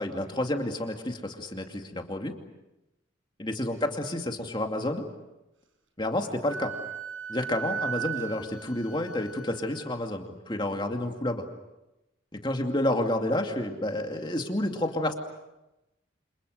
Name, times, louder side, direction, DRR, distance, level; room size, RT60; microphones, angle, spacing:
voice 1, 0.0-2.4 3.4-5.0 6.0-6.7 7.3-11.4 12.3-15.1, left 1 dB, 25° left, 3 dB, 2.5 m, -30 dB
Wind instrument woodwind instrument, 6.5-9.9, right 8 dB, 90° right, 5.1 m, -36 dB
29.5 x 27.5 x 6.6 m, 0.95 s
head